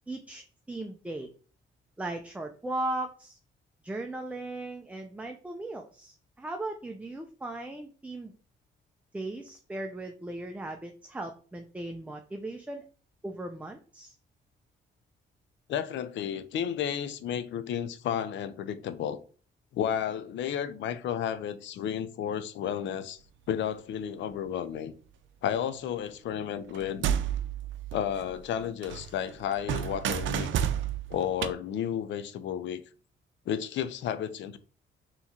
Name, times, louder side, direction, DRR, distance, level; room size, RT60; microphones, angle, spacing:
voice 1, 0.1-1.3 2.0-3.4 3.8-8.3 9.1-12.8 13.2-14.1, right 2 dB, 5° right, 0.5 m, -37 dB
voice 2, 15.7-19.2 19.7-23.2 23.5-24.9 25.4-27.1 27.9-30.7 31.1-32.8 33.5-34.6, left 9 dB, 70° left, 0.5 m, -32 dB
sound 1, 26.7-28.6 28.8-31.5, right 9 dB, 75° right, 0.5 m, -31 dB
3.5 x 3.0 x 4.2 m
cardioid pair, 90°, 20 cm